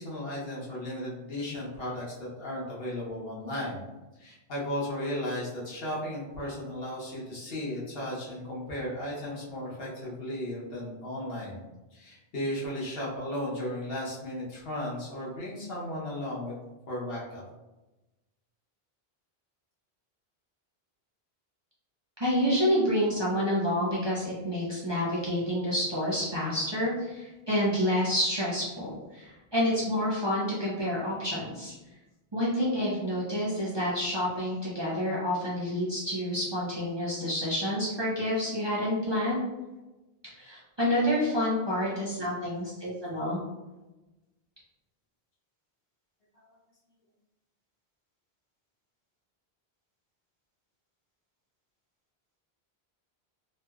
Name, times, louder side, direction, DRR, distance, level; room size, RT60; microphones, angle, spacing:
voice 1, 0.0-3.8 4.2-11.6 11.9-16.6 16.9-17.4 46.3-46.5, left 1 dB, 65° left, -6 dB, 1.1 m, -35 dB
voice 2, 22.2-31.7 32.3-39.4 40.3-43.4, equal, 30° right, -7 dB, 0.6 m, -28 dB
3.0 x 2.9 x 2.3 m, 1.1 s
omnidirectional pair, 1.1 m